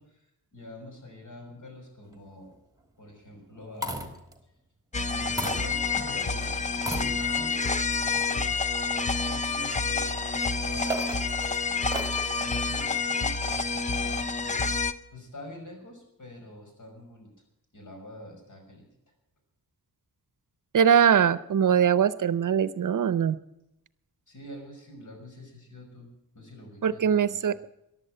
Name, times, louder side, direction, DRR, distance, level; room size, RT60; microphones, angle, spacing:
voice 1, 0.0-2.6 3.0-4.1 5.1-8.5 8.9-11.0 11.6-14.7 15.1-17.3 17.7-18.9 24.3-27.4, left 1 dB, 55° left, 2 dB, 5.7 m, -46 dB
sound 1, 2.1-2.5 3.5-4.4 5.4-6.1 6.8-7.6 8.3-8.4 10.5-12.3 13.5-14.0, right 1 dB, 10° right, 1.6 m, -36 dB
sound 2, 4.9-14.9, left 4 dB, 20° left, 0.6 m, -28 dB
voice 2, 20.7-23.4 26.8-27.5, right 8 dB, 60° right, 16 dB, 0.7 m, -22 dB
14.5 x 11.5 x 7.5 m, 0.84 s
wide cardioid pair, 180°, 35 cm